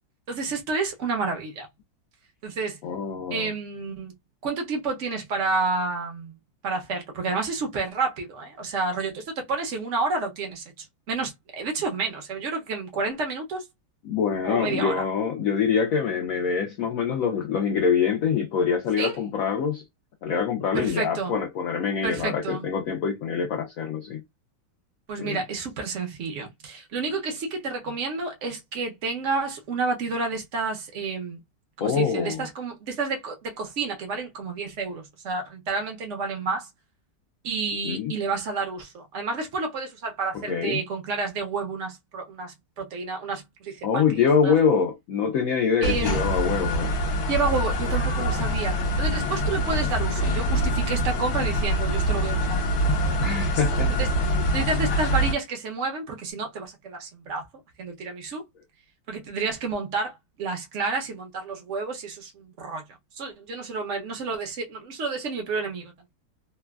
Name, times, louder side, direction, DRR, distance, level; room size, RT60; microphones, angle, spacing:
voice 1, 0.3-1.7 2.4-2.8 3.3-4.1 4.4-6.3 6.6-13.7 14.4-15.0 19.0-19.2 20.7-21.4 22.0-22.7 25.1-31.4 31.8-36.7 37.4-44.1 44.4-44.5 45.8-46.2 47.3-52.6 53.0-53.3 53.9-57.5 57.8-58.4 59.1-62.8 63.1-65.9, right 4 dB, 65° right, 0.7 m, -30 dB
voice 2, 2.8-3.5 14.0-19.8 20.2-24.2 25.2-25.4 31.8-32.5 37.8-38.1 40.5-40.8 43.8-46.9 53.2-53.9 54.2-54.5, left 6 dB, 80° left, 0.7 m, -25 dB
sound 1, 45.8-55.3, equal, 65° left, 1.3 m, -25 dB
3.2 x 2.1 x 2.2 m
omnidirectional pair, 2.0 m